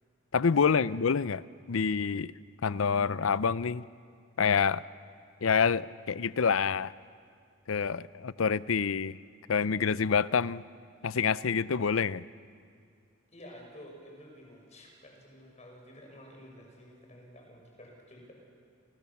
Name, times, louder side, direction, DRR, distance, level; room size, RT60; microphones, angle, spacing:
voice 1, 0.3-1.4 1.7-2.3 2.6-3.8 4.4-4.8 5.4-6.9 7.7-9.2 9.5-10.6 11.0-12.2, left 6 dB, 80° left, 18 dB, 0.6 m, -27 dB
voice 2, 13.3-18.5, equal, 35° left, 1 dB, 6.2 m, -51 dB
28.5 x 28.0 x 7.2 m, 2.2 s
head